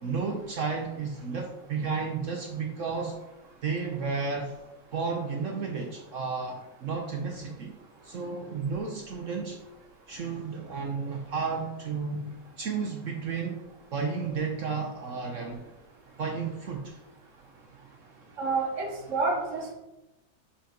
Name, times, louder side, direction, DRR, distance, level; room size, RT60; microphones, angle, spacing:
voice 1, 0.0-3.1 3.6-4.5 4.9-7.8 8.0-9.6 10.1-12.3 12.6-13.6 13.9-15.7 16.2-17.0, right 5 dB, 65° right, 3 dB, 0.8 m, -32 dB
voice 2, 18.4-19.7, right 3 dB, 45° right, 0 dB, 1.5 m, -29 dB
5.1 x 5.1 x 5.1 m, 0.95 s
omnidirectional pair, 2.1 m